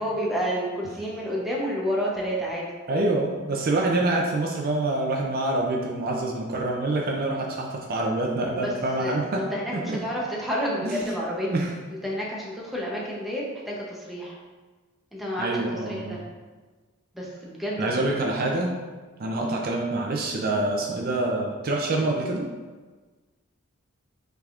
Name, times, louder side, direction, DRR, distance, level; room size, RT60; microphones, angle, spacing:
voice 1, 0.0-2.7 8.5-8.7 9.0-11.5 11.9-14.4 15.1-16.2 17.1-17.9, equal, ahead, -5 dB, 0.7 m, -30 dB
voice 2, 2.9-9.4 9.9-10.0 10.8-11.0 11.5-11.7 15.4-16.2 17.8-18.7 19.2-22.5, right 2 dB, 45° right, 0 dB, 0.5 m, -26 dB
5.7 x 3.4 x 2.5 m, 1.3 s
head